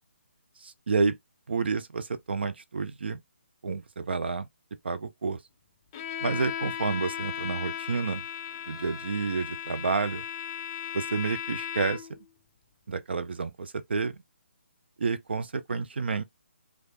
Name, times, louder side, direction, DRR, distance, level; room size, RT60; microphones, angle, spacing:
voice 1, 0.6-1.2 1.5-3.2 3.6-4.5 4.8-5.4 6.2-8.2 8.7-10.2 10.9-12.2 12.9-14.2 15.0-16.2, right 4 dB, 55° right, 0.5 m, -30 dB
Bowed string instrument, 5.9-12.2, left 9 dB, 25° left, 0.3 m, -36 dB
3.1 x 2.3 x 4.0 m
figure-of-eight pair, 140°, 7 cm